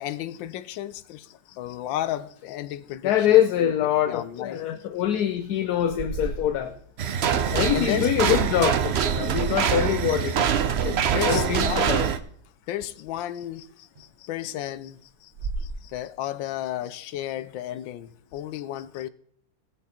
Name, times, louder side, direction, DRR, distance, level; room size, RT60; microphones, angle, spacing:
voice 1, 0.0-3.7 4.1-4.6 7.2-8.1 11.1-11.9 12.7-15.3 15.6-19.1, left 12 dB, 90° left, 1.4 m, -33 dB
voice 2, 3.0-6.7 7.5-10.5 10.8-11.0 11.3-12.1, left 10 dB, 65° left, 1.1 m, -24 dB
sound 1, 4.9-5.2 5.7-7.5 8.2-8.9 13.4-13.5 13.9-14.1 14.5-14.6 14.9-15.0 15.3-15.7, right 3 dB, 40° right, 1.4 m, -35 dB
sound 2, 7.0-12.2, right 8 dB, 90° right, 0.5 m, -24 dB
18.0 x 6.9 x 4.3 m
omnidirectional pair, 2.0 m